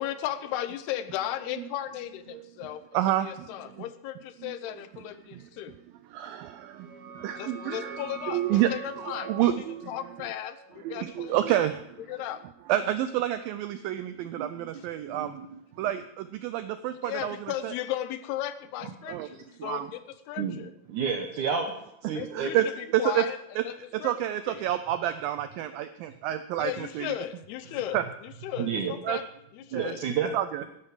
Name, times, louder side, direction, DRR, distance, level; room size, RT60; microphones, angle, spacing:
voice 1, 0.0-2.8 3.2-5.7 7.4-9.5 9.9-11.7 12.1-12.4 14.8-14.9 17.0-20.7 22.1-23.4 23.6-24.1 24.5-24.6 26.6-29.2 29.5-30.0, left 12 dB, 80° left, 12 dB, 2.7 m, -36 dB
voice 2, 2.9-3.5 3.8-3.9 5.3-5.5 6.1-8.0 8.3-8.7 9.3-9.9 10.8-11.8 12.7-15.4 15.8-17.7 19.1-19.3 19.6-19.9 22.0-22.7 22.9-23.2 23.6-23.7 23.9-27.2 27.9-28.0 29.1-29.2 29.7-29.9 30.3-30.6, right 12 dB, 85° right, 11 dB, 2.0 m, -29 dB
sound 1, 6.4-11.9, right 4 dB, 50° right, 3.0 m, -45 dB
voice 3, 15.1-15.5 15.8-15.9 20.4-20.6 20.9-21.7 22.0-22.5 28.6-28.9 29.7-30.3, right 6 dB, 70° right, 4 dB, 1.9 m, -30 dB
13.5 x 12.0 x 4.8 m, 0.77 s
omnidirectional pair, 4.7 m